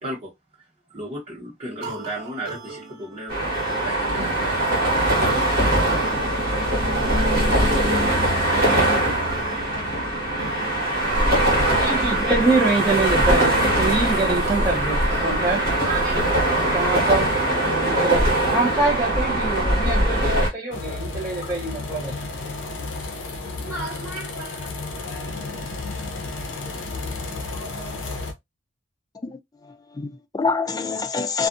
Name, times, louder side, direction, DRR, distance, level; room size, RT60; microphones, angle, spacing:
voice 1, 0.9-3.5 3.8-4.6 5.3-5.8, right 1 dB, 30° right, 1.2 m, -34 dB
sound 1, 1.8-15.5, right 3 dB, 75° right, 0.6 m, -38 dB
sound 2, 3.3-20.5, right 1 dB, 50° right, 1.3 m, -21 dB
voice 2, 11.8-16.5 16.7-17.3 17.7-22.1 23.6-24.7, right 3 dB, 10° right, 0.8 m, -25 dB
sound 3, 20.7-28.3, left 3 dB, 65° left, 0.6 m, -32 dB
voice 3, 29.2-31.5, left 4 dB, 20° left, 0.3 m, -27 dB
2.5 x 2.4 x 2.5 m
head